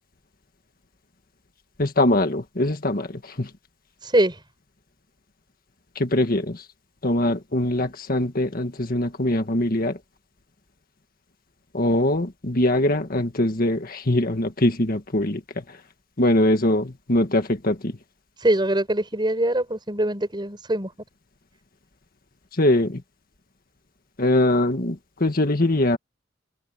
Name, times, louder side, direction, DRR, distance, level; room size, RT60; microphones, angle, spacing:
voice 1, 1.8-3.1 3.4-3.5 5.9-6.6 7.0-10.0 11.7-15.4 16.2-17.9 22.6-23.0 24.2-26.0, left 1 dB, 50° left, 1.7 m, -22 dB
voice 2, 4.0-4.4 18.4-20.9, right 1 dB, 25° right, 6.2 m, -22 dB
open air
head